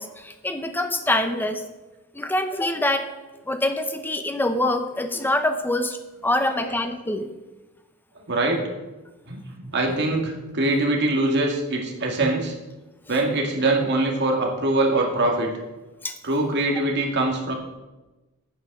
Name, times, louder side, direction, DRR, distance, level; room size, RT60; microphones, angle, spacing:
voice 1, 0.0-1.6 2.1-3.1 3.5-6.0 6.2-7.3 12.2-12.3 16.0-16.1, left 1 dB, 10° left, 7 dB, 0.8 m, -25 dB
voice 2, 6.4-6.8 8.3-8.6 9.3-12.5 13.1-15.5 16.2-17.5, right 2 dB, 55° right, 0 dB, 2.0 m, -23 dB
9.0 x 7.4 x 5.9 m, 1.1 s
head